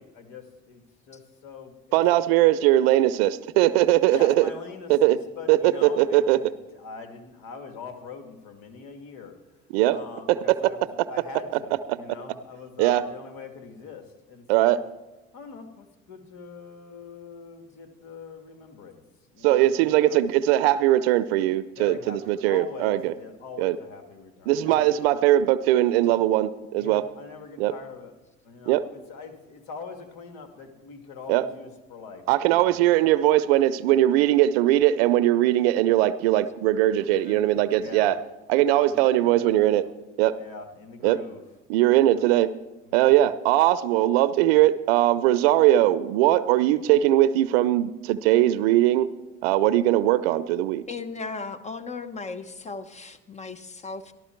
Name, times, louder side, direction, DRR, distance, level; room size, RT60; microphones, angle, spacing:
voice 1, 0.0-2.0 4.1-9.3 9.9-14.9 15.3-19.0 19.3-20.2 21.7-25.1 26.8-28.1 28.4-32.8 36.3-36.5 37.0-38.1 38.7-39.7 40.3-41.4 41.8-42.2 42.8-43.3, left 5 dB, 70° left, 6 dB, 2.1 m, -43 dB
voice 2, 1.9-4.5 4.9-5.2 5.5-6.4 9.7-10.0 10.3-10.4 12.8-13.0 14.5-14.8 19.4-23.1 23.6-23.8 24.5-27.0 27.6-27.7 28.7-28.8 31.3-31.4 32.3-38.2 38.5-39.8 40.2-40.3 41.0-41.2 41.7-42.5 42.9-49.1 49.4-50.8, right 14 dB, 85° right, 15 dB, 0.5 m, -20 dB
voice 3, 50.9-54.1, left 4 dB, 25° left, 11 dB, 1.1 m, -36 dB
13.5 x 12.5 x 4.5 m, 1.1 s
supercardioid pair, 85°, 30 cm